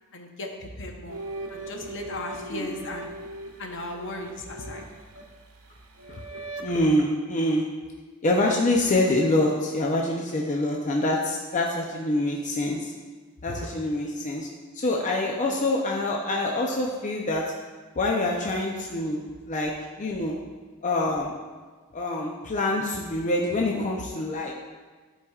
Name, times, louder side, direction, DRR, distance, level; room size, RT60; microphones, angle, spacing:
voice 1, 0.1-1.2 1.5-3.1 3.6-4.8, left 2 dB, 60° left, 3 dB, 0.8 m, -36 dB
sound 1, 1.1-7.0, right 2 dB, 85° right, 0.8 m, -40 dB
voice 2, 6.6-7.7 8.2-12.9 13.4-14.5 14.7-17.4 18.0-19.7 20.0-20.4 20.8-21.4 21.9-24.5, left 1 dB, 35° left, -1 dB, 0.5 m, -25 dB
11.5 x 4.8 x 2.4 m, 1.4 s
head